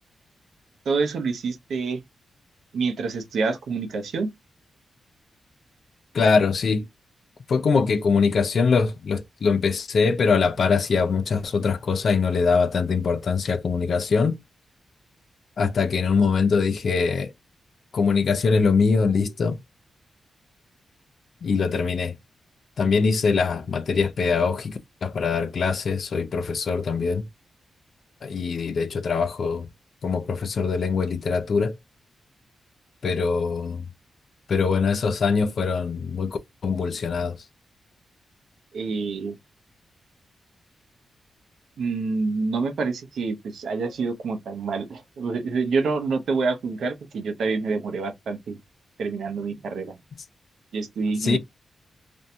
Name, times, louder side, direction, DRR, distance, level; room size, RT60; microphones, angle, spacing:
voice 1, 0.9-2.0 2.7-4.3 38.7-39.4 41.8-48.6 49.0-50.0 50.7-51.4, right 4 dB, 80° right, 0.6 m, -27 dB
voice 2, 6.1-6.9 7.5-14.4 15.6-17.3 17.9-19.6 21.4-22.2 22.8-27.2 28.2-29.7 30.0-31.7 33.0-33.9 34.5-37.4 51.2-51.4, left 5 dB, 60° left, 0.4 m, -23 dB
2.5 x 2.1 x 2.6 m
cardioid pair, 95°, 0 cm